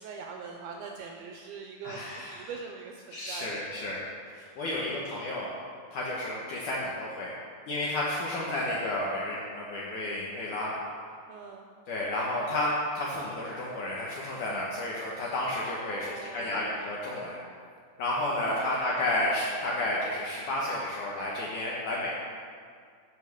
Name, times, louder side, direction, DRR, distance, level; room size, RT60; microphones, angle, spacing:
voice 1, 0.0-4.0 4.8-5.1 8.3-8.6 11.3-11.7 15.9-16.8 18.4-18.8 19.7-19.9, right 5 dB, 80° right, 2 dB, 2.3 m, -43 dB
voice 2, 1.8-2.5 3.1-4.0 4.4-5.5 5.9-7.3 7.7-10.7 11.9-12.7 13.0-17.4 18.0-22.1, left 1 dB, 70° left, -5 dB, 1.9 m, -31 dB
8.8 x 6.4 x 6.3 m, 2.1 s
omnidirectional pair, 4.9 m